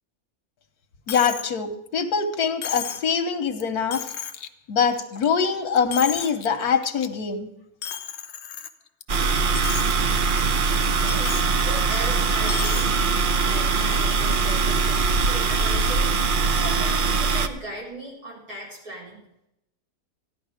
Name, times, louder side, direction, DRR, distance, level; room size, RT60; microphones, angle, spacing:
voice 1, 1.1-4.1 4.7-7.5, left 6 dB, 85° left, 8 dB, 1.6 m, -23 dB
Coin (dropping), 1.1-1.5 1.9-2.0 2.6-3.1 3.6-3.7 3.9-4.5 4.9-5.5 5.8-6.5 6.8-7.1 7.8-9.0 9.4-9.9 10.3-10.4 11.1-11.5 12.4-12.9, left 9 dB, 55° left, 0.9 m, -33 dB
sound 1, 9.1-17.5, right 4 dB, 45° right, 0.7 m, -22 dB
voice 2, 11.0-11.4 11.6-12.8 13.4-16.1 16.5-19.2, right 1 dB, 70° right, -5 dB, 5.1 m, -37 dB
14.5 x 11.0 x 5.1 m, 0.83 s
omnidirectional pair, 1.6 m